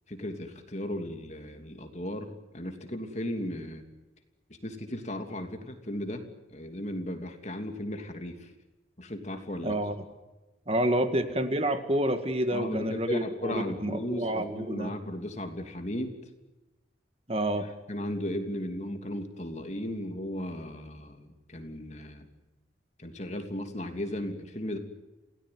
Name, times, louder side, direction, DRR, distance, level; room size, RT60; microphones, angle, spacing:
voice 1, 0.1-3.8 4.6-8.5 9.0-9.8 12.5-16.2 17.9-22.3 23.0-24.8, left 1 dB, 40° left, 6 dB, 3.0 m, -36 dB
voice 2, 9.6-10.0 10.7-14.9 17.3-17.7, right 1 dB, 30° right, 8 dB, 1.9 m, -28 dB
28.0 x 18.0 x 9.6 m, 1.1 s
head